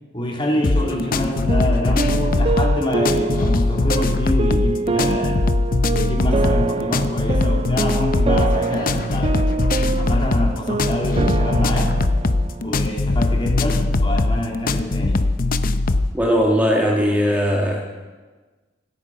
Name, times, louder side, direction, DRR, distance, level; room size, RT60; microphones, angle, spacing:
voice 1, 0.1-5.4 5.9-9.5 10.0-11.9 12.6-15.2, left 1 dB, 30° left, -1 dB, 3.4 m, -26 dB
sound 1, 0.6-16.1, left 2 dB, 50° left, 0.7 m, -20 dB
sound 2, 0.8-12.9, right 3 dB, 30° right, 0.4 m, -26 dB
voice 2, 16.1-17.8, equal, 10° right, -1 dB, 1.6 m, -19 dB
25.5 x 9.5 x 5.6 m, 1.3 s
head